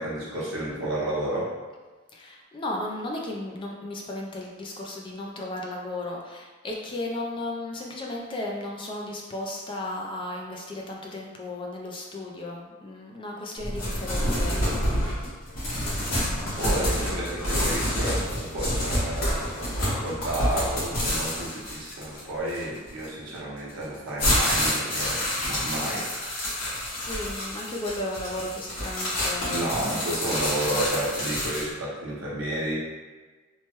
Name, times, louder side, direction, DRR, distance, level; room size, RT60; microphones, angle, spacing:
voice 1, 0.0-1.5 16.6-26.1 26.8-26.9 29.5-32.7, right 1 dB, 75° right, -6 dB, 0.9 m, -31 dB
voice 2, 2.1-15.3 26.5-29.8, left 1 dB, 25° left, -1 dB, 0.3 m, -35 dB
sound 1, 13.6-23.0 23.7-31.7, equal, 75° left, 1.2 m, -28 dB
3.1 x 2.1 x 2.9 m, 1.3 s
head